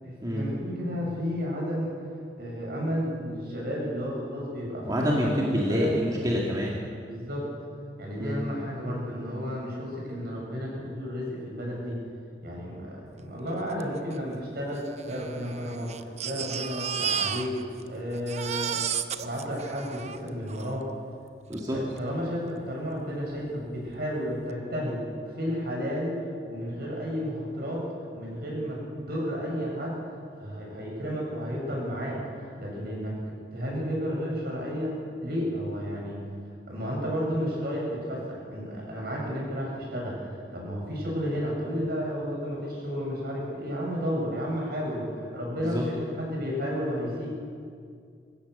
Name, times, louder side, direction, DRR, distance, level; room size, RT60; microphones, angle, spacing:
voice 1, 0.0-1.9 2.4-5.9 7.0-7.5 8.0-12.0 12.4-18.8 19.2-20.9 21.7-25.0 25.3-26.1 26.5-27.8 28.1-30.0 30.4-33.2 33.5-36.2 36.7-47.3, equal, 60° right, -3 dB, 7.5 m, -32 dB
voice 2, 4.8-6.8 8.1-8.4 21.5-21.8 45.6-45.8, equal, 20° right, -3 dB, 2.1 m, -27 dB
Crying sobbing, 13.8-13.9 14.1-14.2 15.0-17.9 18.1-20.7 21.5-21.6 22.0-22.1, right 8 dB, 40° right, 0.8 m, -33 dB
24.0 x 16.0 x 6.8 m, 2.2 s
head